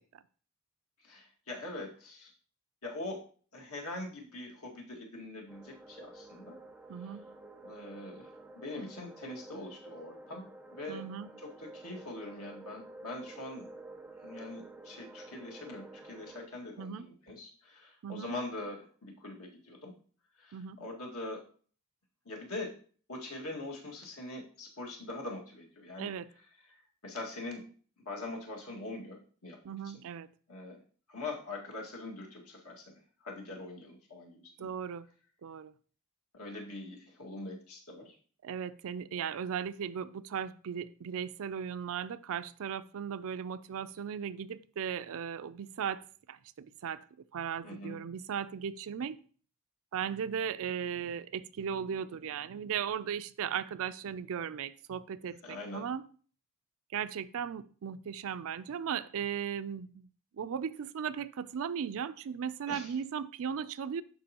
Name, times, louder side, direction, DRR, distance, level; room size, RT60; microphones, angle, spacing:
voice 1, 1.0-2.3 2.8-3.2 3.5-6.6 7.6-8.3 8.6-11.0 11.6-13.7 14.2-19.9 20.4-21.4 22.3-22.8 23.1-26.1 26.7-27.7 28.1-29.6 30.5-30.8 31.1-32.9 33.2-34.7 36.3-38.1 47.6-48.0 55.4-55.9 62.7-62.9, left 2 dB, 70° left, 1.9 m, -43 dB
sound 1, 5.5-16.5, right 2 dB, 5° right, 0.5 m, -50 dB
voice 2, 6.9-7.2 10.9-11.3 16.8-17.1 18.0-18.3 20.5-20.8 26.0-26.3 29.6-30.3 34.6-35.1 35.4-35.7 38.4-47.0 47.3-49.2 49.9-56.0 56.9-60.1 60.4-64.0, right 7 dB, 65° right, 0.4 m, -37 dB
11.5 x 4.6 x 2.9 m
head